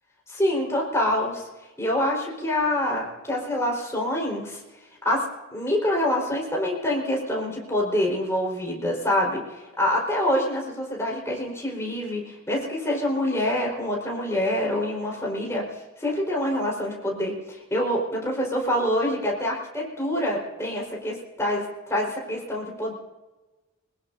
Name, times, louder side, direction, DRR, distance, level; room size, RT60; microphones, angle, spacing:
voice 1, 0.3-1.4 1.8-4.6 5.0-5.3 5.5-9.4 9.8-15.6 16.0-22.9, left 1 dB, 15° left, -2 dB, 4.4 m, -26 dB
22.5 x 20.0 x 2.7 m, 1.2 s
head